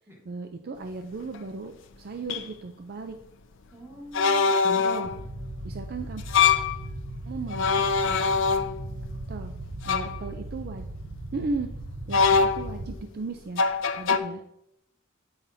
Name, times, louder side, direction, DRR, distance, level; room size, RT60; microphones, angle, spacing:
voice 1, 0.2-3.2 4.6-5.1 5.6-6.2 7.2-8.2 9.3-9.5 9.9-10.9 11.3-11.7 12.1-13.6 14.0-14.4, right 3 dB, 50° right, 6 dB, 0.4 m, -36 dB
sound 1, 1.3-1.4 2.3-2.4 4.1-5.2 6.2-6.8 7.5-9.0 9.8-10.2 12.1-12.9 13.6-14.2, left 5 dB, 65° left, 0.5 m, -23 dB
voice 2, 3.7-5.3, equal, 15° right, -2 dB, 1.2 m, -46 dB
sound 2, 5.0-12.9, right 1 dB, 75° right, 1.0 m, -38 dB
8.7 x 5.8 x 2.7 m, 0.78 s
head